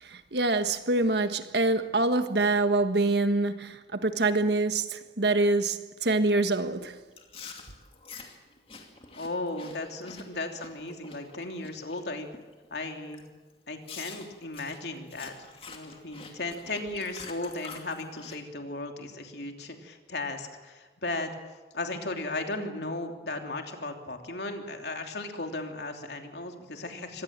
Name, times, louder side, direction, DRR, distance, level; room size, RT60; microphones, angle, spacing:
voice 1, 0.0-7.0, right 2 dB, 75° right, 1.5 m, -25 dB
Chewing mastication, 7.1-12.0 12.3-12.7 13.1-13.3 13.9-18.4, left 5 dB, 30° left, 2.6 m, -47 dB
voice 2, 9.1-12.3 12.7-13.2 13.7-21.4 21.7-27.2, left 2 dB, 75° left, 3.0 m, -36 dB
25.0 x 18.5 x 7.5 m
head